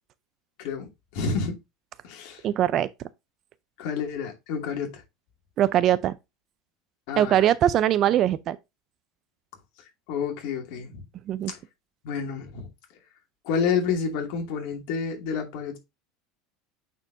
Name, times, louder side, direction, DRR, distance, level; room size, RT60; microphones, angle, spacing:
voice 1, 0.6-1.6 2.0-2.4 3.8-5.0 7.1-7.5 10.1-11.0 11.5-11.6 12.0-12.7 13.4-15.8, left 6 dB, 60° left, 2.5 m, -29 dB
voice 2, 2.4-2.9 5.6-6.1 7.2-8.6 11.3-11.5, right 11 dB, 35° right, 0.4 m, -21 dB
8.9 x 4.5 x 2.7 m
supercardioid pair, 160°, 0 cm